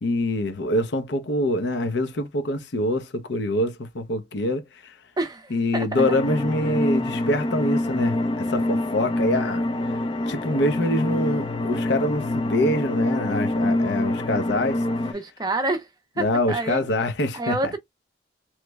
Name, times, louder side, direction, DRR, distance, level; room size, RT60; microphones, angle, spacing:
voice 1, 0.0-4.9 5.5-9.9 10.3-14.8 16.2-17.6, left 1 dB, 70° left, 0.6 m, -25 dB
voice 2, 5.2-6.0 15.1-15.9 16.2-16.8 17.3-17.8, right 2 dB, 20° right, 0.5 m, -28 dB
sound 1, 6.0-15.1, left 1 dB, 30° left, 0.4 m, -25 dB
3.1 x 2.1 x 3.2 m
head